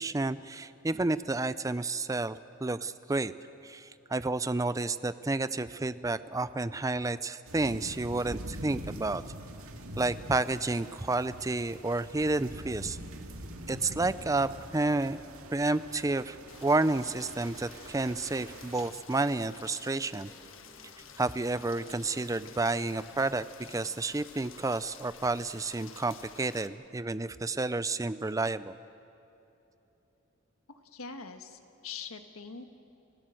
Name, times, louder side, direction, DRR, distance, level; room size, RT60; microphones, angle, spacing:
voice 1, 0.0-3.3 3.6-9.2 10.0-13.0 13.7-15.2 15.5-20.3 21.2-28.8, right 2 dB, 15° right, 15 dB, 0.4 m, -30 dB
sound 1, 7.5-18.9, right 1 dB, 85° right, 2.0 m, -44 dB
Rain, 16.5-26.7, left 7 dB, 65° left, 1.4 m, -51 dB
sound 2, 16.7-24.1, equal, 25° left, 7.5 m, -59 dB
voice 2, 30.7-32.7, left 5 dB, 85° left, 7 dB, 1.4 m, -43 dB
28.5 x 15.5 x 7.7 m, 3.0 s
head